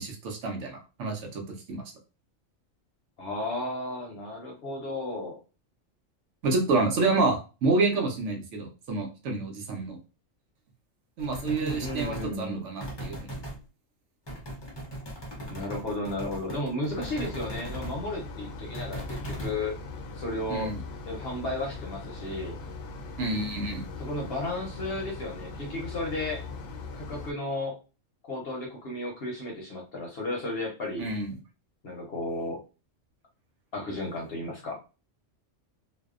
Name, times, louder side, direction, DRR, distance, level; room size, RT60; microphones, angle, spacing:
voice 1, 0.0-1.4 1.7-1.8 6.4-10.0 11.2-13.2 20.5-20.8 23.2-23.8 31.0-31.3, right 3 dB, 70° right, 2 dB, 0.9 m, -28 dB
voice 2, 3.2-5.4 11.4-12.7 15.5-19.7 20.2-20.7 21.1-22.6 24.0-26.4 26.9-27.8 28.3-31.1 31.8-32.6 33.7-34.8, left 1 dB, 55° left, -1 dB, 0.8 m, -34 dB
sound 1, 11.2-12.3 12.8-13.6 14.3-18.0 18.7-19.6, right 1 dB, 35° left, 0.4 m, -38 dB
sound 2, 16.9-27.3, left 3 dB, 85° left, 1.0 m, -40 dB
2.6 x 2.0 x 2.4 m, 0.32 s
omnidirectional pair, 1.4 m